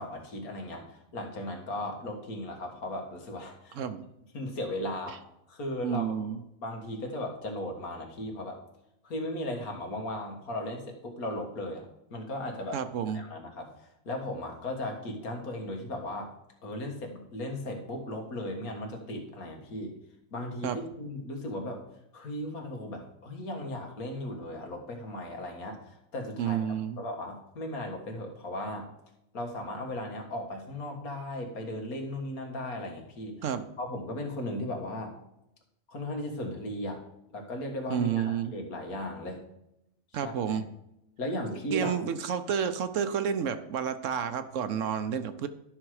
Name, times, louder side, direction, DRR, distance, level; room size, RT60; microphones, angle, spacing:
voice 1, 0.0-3.8 4.3-6.3 6.6-8.6 9.0-12.8 13.1-16.3 16.6-20.0 20.3-21.8 22.1-28.9 29.3-33.4 33.8-35.2 35.9-37.0 37.3-39.4 40.2-40.6 41.2-42.0, left 1 dB, 80° left, 3 dB, 2.1 m, -36 dB
voice 2, 5.8-6.4 12.7-13.2 20.6-20.8 26.4-27.0 33.4-33.7 37.9-38.5 40.1-40.6 41.5-45.5, right 8 dB, 65° right, 11 dB, 1.0 m, -30 dB
12.0 x 6.0 x 4.8 m, 0.85 s
omnidirectional pair, 1.5 m